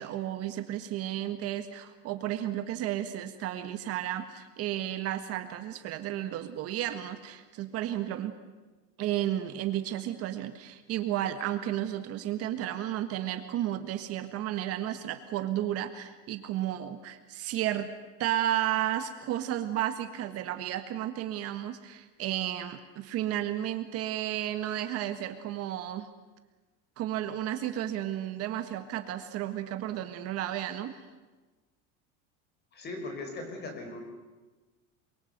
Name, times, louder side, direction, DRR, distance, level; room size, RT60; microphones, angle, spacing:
voice 1, 0.0-8.3 9.0-17.9 18.2-26.1 27.0-31.0, right 12 dB, 45° right, 9 dB, 1.7 m, -33 dB
voice 2, 32.7-34.0, left 2 dB, 30° left, 5 dB, 5.7 m, -39 dB
28.5 x 23.0 x 8.1 m, 1.2 s
cardioid pair, 165°, 34 cm